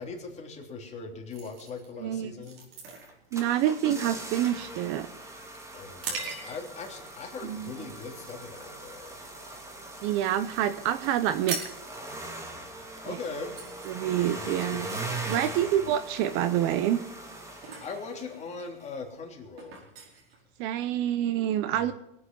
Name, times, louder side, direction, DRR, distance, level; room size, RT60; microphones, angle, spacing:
voice 1, 0.0-2.7 5.7-9.7 13.0-13.6 14.4-15.6 17.5-19.8, left 4 dB, 20° left, 1 dB, 3.3 m, -41 dB
sound 1, 1.3-6.9 7.4-7.7 8.2-8.5 8.8-10.0 10.3-10.4 10.6-10.8 11.1-21.1, right 4 dB, 75° right, 5.2 m, -42 dB
voice 2, 2.0-2.3 3.3-5.1 7.4-7.7 10.0-11.6 13.1-13.2 13.8-14.9 15.3-17.0 20.6-21.9, right 11 dB, 40° right, 12 dB, 0.9 m, -27 dB
sound 2, 3.0-18.5 18.8-18.9, right 2 dB, 10° right, 2.2 m, -41 dB
22.5 x 8.6 x 5.5 m, 0.84 s
hypercardioid pair, 130°, 30 cm